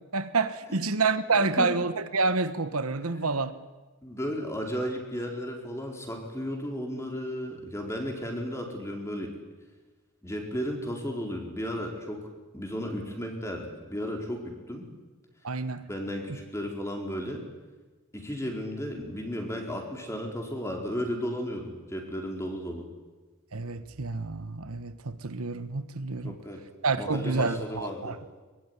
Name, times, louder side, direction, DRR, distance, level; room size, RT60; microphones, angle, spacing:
voice 1, 0.1-3.5 15.4-15.9 16.3-16.4 23.5-26.4 26.8-28.2, right 4 dB, 85° right, 1.3 m, -28 dB
voice 2, 1.3-1.7 3.2-3.4 4.0-9.3 10.2-12.2 12.5-14.9 15.9-17.4 18.1-22.9 26.2-26.6 26.9-28.2, equal, 15° left, 4.5 m, -34 dB
23.5 x 22.0 x 9.8 m
head